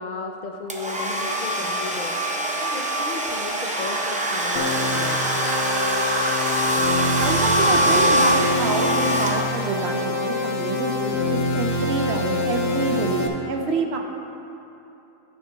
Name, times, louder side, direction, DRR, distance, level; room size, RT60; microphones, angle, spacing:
voice 1, 0.0-5.4, left 3 dB, 55° left, 3 dB, 0.5 m, -35 dB
Domestic sounds home sounds, 0.7-9.9, right 1 dB, 10° right, 0.3 m, -24 dB
sound 1, 3.6-8.2, right 5 dB, 85° right, 1.0 m, -30 dB
sound 2, 4.6-13.3, left 2 dB, 75° left, 1.1 m, -25 dB
voice 2, 7.2-14.0, right 3 dB, 60° right, 3 dB, 0.9 m, -27 dB
12.0 x 9.4 x 2.3 m, 2.9 s
omnidirectional pair, 1.4 m